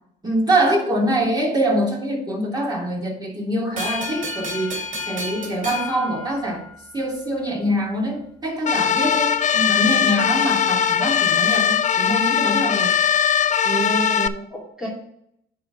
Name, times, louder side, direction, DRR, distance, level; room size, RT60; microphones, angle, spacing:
voice 1, 0.2-6.7 6.9-13.0, right 1 dB, 20° right, -3 dB, 3.0 m, -24 dB
sound 1, 3.8-7.0, left 2 dB, 45° right, 3.0 m, -31 dB
sound 2, 8.7-14.3, left 8 dB, 40° left, 0.5 m, -20 dB
voice 2, 13.6-14.9, right 3 dB, 5° right, -6 dB, 2.5 m, -28 dB
9.6 x 3.7 x 5.9 m, 0.74 s
cardioid pair, 90°, 20 cm